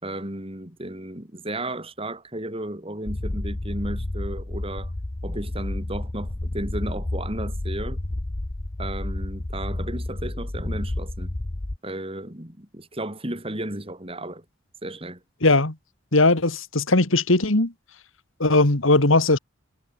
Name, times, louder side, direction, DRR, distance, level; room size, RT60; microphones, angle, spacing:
voice 1, 0.0-4.9 5.2-8.0 8.8-11.3 11.8-14.4 14.8-15.2, right 1 dB, 25° right, 4.4 m, -34 dB
sound 1, 3.1-11.8, left 1 dB, 30° left, 0.8 m, -30 dB
voice 2, 15.4-15.8 16.1-17.7 18.4-19.4, left 2 dB, 70° left, 2.4 m, -19 dB
head